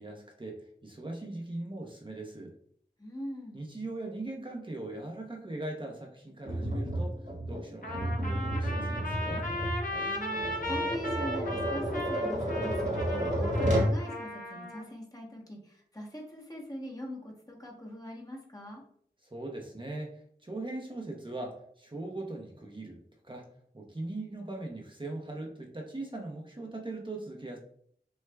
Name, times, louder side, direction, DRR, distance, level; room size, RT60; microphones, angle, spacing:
voice 1, 0.0-2.5 3.5-9.5 19.2-23.5 23.7-27.6, right 2 dB, 30° right, 0 dB, 0.7 m, -40 dB
voice 2, 3.0-3.6 9.9-18.8, equal, 20° left, -1 dB, 0.9 m, -42 dB
Tap, 6.5-14.0, equal, 45° right, 1.3 m, -31 dB
Trumpet, 7.8-14.8, left 1 dB, 50° left, 0.9 m, -36 dB
6.2 x 2.3 x 2.2 m, 0.62 s
wide cardioid pair, 50°, 18 cm